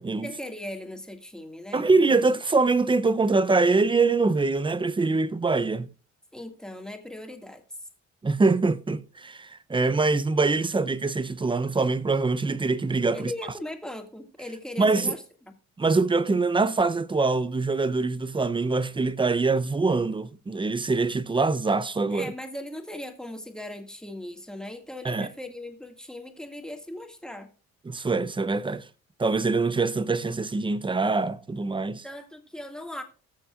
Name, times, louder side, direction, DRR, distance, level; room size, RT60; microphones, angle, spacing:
voice 1, 0.2-1.9 6.3-7.6 13.1-15.2 22.1-27.5 32.0-33.0, left 1 dB, ahead, 2.0 m, -38 dB
voice 2, 1.7-5.9 8.2-13.3 14.8-15.1 15.8-22.3 25.0-25.3 27.9-28.8 29.2-32.0, right 3 dB, 15° right, 0.6 m, -24 dB
20.0 x 6.9 x 2.5 m
cardioid pair, 90°, 30 cm